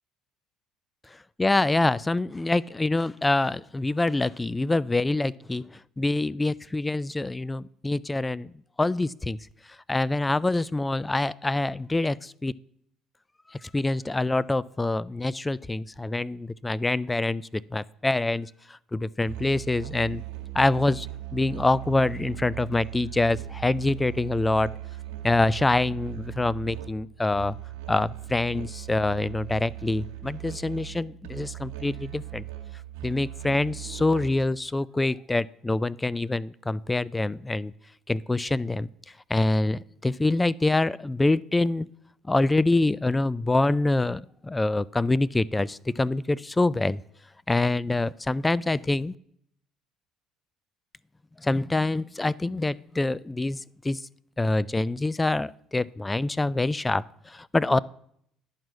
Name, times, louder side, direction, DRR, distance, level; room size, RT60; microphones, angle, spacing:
voice 1, 1.4-5.7 6.0-8.5 8.8-9.4 9.9-12.5 13.5-20.2 20.5-21.1 21.3-24.7 25.2-27.6 27.9-32.4 33.0-37.7 38.1-38.9 39.3-41.9 42.3-47.0 47.5-49.1 51.4-54.0 54.4-57.8, left 2 dB, 15° left, 22 dB, 0.3 m, -25 dB
Musical instrument, 19.2-34.6, right 14 dB, 85° right, 1.4 m, -39 dB
10.5 x 4.7 x 6.2 m, 0.70 s
supercardioid pair, 75°, 0 cm